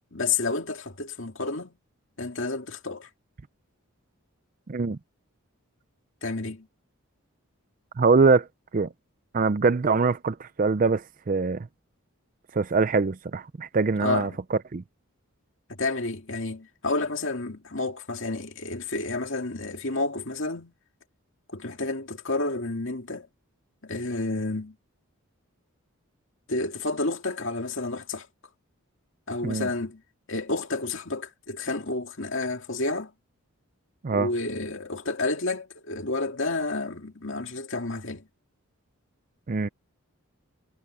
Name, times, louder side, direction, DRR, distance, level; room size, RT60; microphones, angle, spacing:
voice 1, 0.1-1.7 2.2-3.1 6.2-6.7 14.0-14.4 15.8-20.7 21.5-23.3 23.8-24.7 26.5-28.3 29.3-30.0 30.3-33.1 34.1-38.2, left 3 dB, 60° left, 2.3 m, -30 dB
voice 2, 8.0-8.5 8.7-8.9 9.3-11.7 12.5-14.8 29.4-29.7 34.0-34.3 39.5-39.7, right 4 dB, 40° right, 0.4 m, -23 dB
head